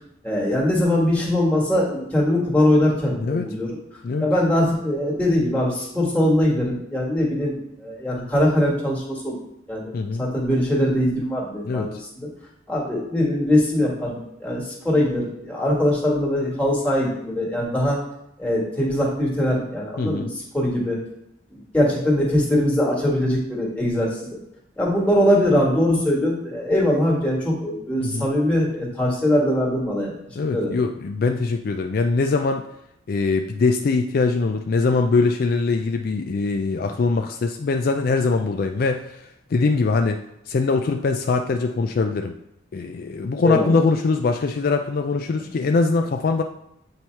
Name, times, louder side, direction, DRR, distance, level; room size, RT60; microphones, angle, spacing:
voice 1, 0.2-3.7 4.2-9.3 9.7-9.9 10.2-12.3 12.7-18.0 18.4-21.0 21.5-24.4 24.8-30.2 30.5-30.7 43.4-43.7, left 1 dB, 5° left, -5 dB, 1.7 m, -22 dB
voice 2, 9.9-10.3 11.6-11.9 20.0-20.3 28.0-28.3 30.4-32.6 33.1-39.2 39.5-40.2 40.5-42.3 42.7-46.4, left 4 dB, 50° left, 5 dB, 0.4 m, -22 dB
7.9 x 2.9 x 4.5 m, 0.82 s
head